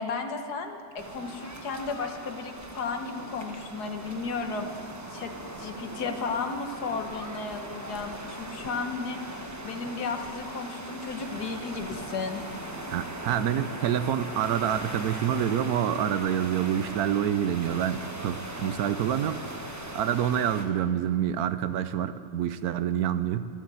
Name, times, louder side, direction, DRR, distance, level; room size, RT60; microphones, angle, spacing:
voice 1, 0.0-4.7 5.1-5.3 5.6-12.4, left 4 dB, 90° left, 5 dB, 1.8 m, -34 dB
sound 1, 1.0-20.7, right 1 dB, 15° right, 0.9 m, -39 dB
voice 2, 12.9-19.4 19.9-23.5, right 9 dB, 75° right, 12 dB, 1.2 m, -27 dB
13.5 x 12.5 x 7.7 m, 2.2 s
omnidirectional pair, 1.6 m